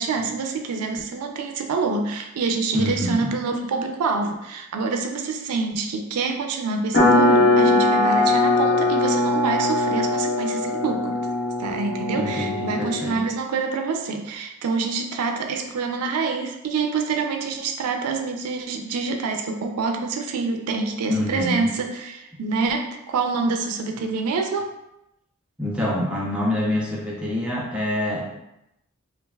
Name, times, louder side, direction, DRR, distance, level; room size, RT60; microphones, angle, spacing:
voice 1, 0.0-11.2 11.6-24.7, right 4 dB, 90° right, 4 dB, 0.4 m, -26 dB
voice 2, 2.7-3.3 12.1-13.2 21.1-21.7 25.6-28.3, left 1 dB, 5° right, -5 dB, 0.5 m, -26 dB
sound 1, 6.9-13.1, left 2 dB, 50° left, 0.5 m, -20 dB
3.2 x 2.4 x 2.2 m, 0.86 s
head